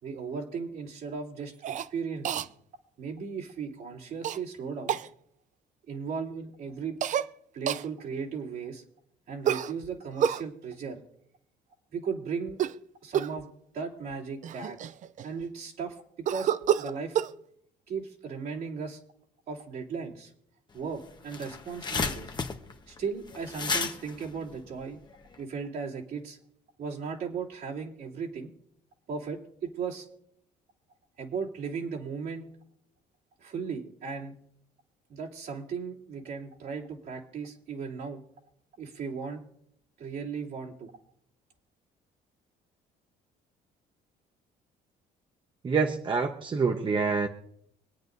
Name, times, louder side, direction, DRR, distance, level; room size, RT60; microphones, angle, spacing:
voice 1, 0.0-2.5 3.0-5.0 5.9-7.0 7.5-8.8 9.3-11.0 11.9-12.6 13.0-13.5 13.7-14.8 15.2-17.2 17.9-19.0 19.5-20.3 20.7-22.4 22.9-25.0 25.4-26.4 26.8-28.5 29.1-30.1 31.2-32.4 33.4-34.3 35.1-38.2 38.8-39.4 40.0-40.9, right 5 dB, 65° right, -3 dB, 3.2 m, -36 dB
Cough, 1.6-1.9 2.2-2.5 4.2-4.4 4.9-5.1 7.0-7.3 7.7-7.9 9.4-10.4 12.5-12.8 13.1-13.4 14.1-14.2 14.4-15.5 16.3-17.3, right 10 dB, 50° right, 0.5 m, -28 dB
sound 1, 20.8-20.9 21.1-25.4, left 4 dB, 25° left, 1.1 m, -33 dB
voice 2, 45.6-47.3, right 5 dB, 30° right, 4 dB, 1.0 m, -26 dB
25.5 x 9.3 x 2.7 m, 0.72 s
cardioid pair, 110°, 17 cm